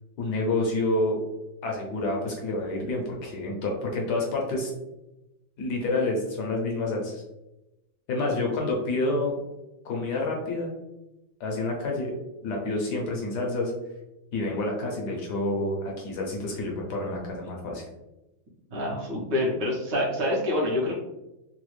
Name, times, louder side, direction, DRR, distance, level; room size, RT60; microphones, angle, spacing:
voice 1, 0.2-1.2 1.6-4.7 5.6-7.2 8.1-9.3 9.8-10.7 11.4-12.1 12.4-13.7 14.3-17.8, left 2 dB, 65° left, -1 dB, 1.1 m, -28 dB
voice 2, 18.7-21.0, left 1 dB, 65° right, -4 dB, 1.6 m, -26 dB
3.9 x 2.2 x 3.1 m, 0.96 s
omnidirectional pair, 2.1 m